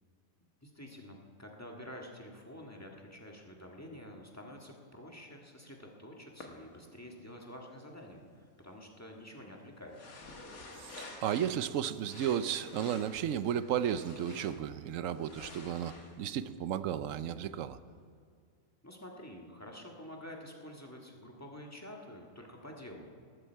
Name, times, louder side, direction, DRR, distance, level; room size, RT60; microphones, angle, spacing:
voice 1, 0.6-10.0 18.8-23.1, left 1 dB, 10° left, 0 dB, 1.7 m, -49 dB
sound 1, 6.4-6.5 9.9-11.7 12.0-14.7 15.1-17.3, left 3 dB, 75° left, 2.2 m, -50 dB
voice 2, 10.8-17.8, right 9 dB, 70° right, 14 dB, 0.9 m, -34 dB
19.0 x 14.0 x 4.6 m, 2.1 s
omnidirectional pair, 1.5 m